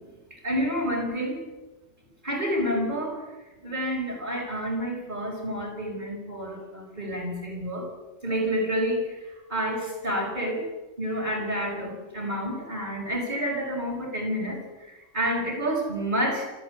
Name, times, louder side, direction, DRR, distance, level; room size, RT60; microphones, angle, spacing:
voice 1, 0.3-1.4 2.2-3.2 3.6-7.9 8.2-10.7 11.0-16.5, equal, 40° right, -4 dB, 5.6 m, -29 dB
29.0 x 13.0 x 8.1 m, 1.1 s
omnidirectional pair, 1.3 m